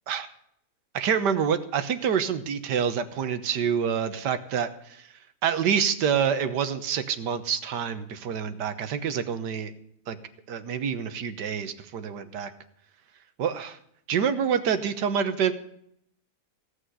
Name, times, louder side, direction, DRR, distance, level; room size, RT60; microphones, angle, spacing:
voice 1, 0.9-5.0 5.4-9.7 10.1-10.2 10.5-12.5 13.4-13.8 14.1-15.5, right 7 dB, 85° right, 10 dB, 1.7 m, -27 dB
16.5 x 6.5 x 9.4 m, 0.71 s
omnidirectional pair, 1.8 m